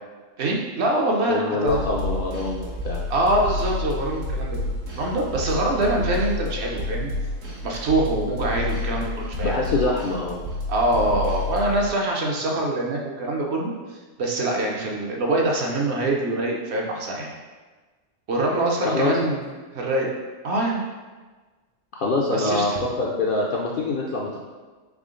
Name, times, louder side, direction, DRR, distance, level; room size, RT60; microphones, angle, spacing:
voice 1, 0.4-1.8 3.1-4.6 5.0-7.1 7.6-9.5 10.7-13.7 14.2-17.3 18.3-19.4 19.7-20.1 20.4-20.8 22.3-22.8, right 2 dB, 60° right, -1 dB, 0.9 m, -24 dB
voice 2, 1.3-3.0 9.4-10.4 18.8-19.4 21.9-24.4, left 3 dB, 65° left, -3 dB, 0.5 m, -25 dB
sound 1, 1.7-11.9, left 2 dB, 80° right, 1.4 m, -30 dB
3.7 x 3.4 x 3.7 m, 1.3 s
omnidirectional pair, 1.3 m